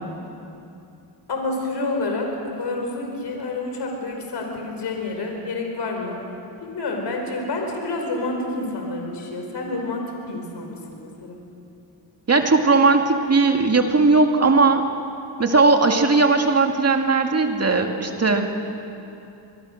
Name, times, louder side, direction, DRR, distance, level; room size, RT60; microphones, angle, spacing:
voice 1, 1.3-6.3 6.6-11.4, left 2 dB, 60° left, 2 dB, 4.7 m, -28 dB
voice 2, 12.3-14.8 15.4-18.5, right 3 dB, 35° right, 3 dB, 2.2 m, -18 dB
25.5 x 22.5 x 6.5 m, 2.7 s
cardioid pair, 85°, 45 cm